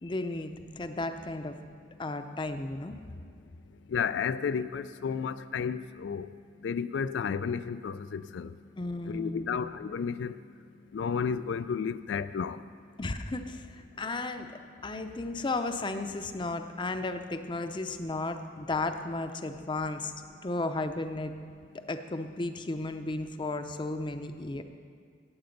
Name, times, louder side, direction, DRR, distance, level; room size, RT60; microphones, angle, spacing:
voice 1, 0.0-1.6 2.0-2.9 8.8-9.6 13.0-20.1 20.4-21.3 21.9-24.6, left 2 dB, 25° left, 8 dB, 0.6 m, -34 dB
voice 2, 3.9-6.3 6.6-8.5 9.1-10.4 10.9-12.6, left 6 dB, 90° left, 13 dB, 0.3 m, -32 dB
17.0 x 7.9 x 5.2 m, 2.2 s
head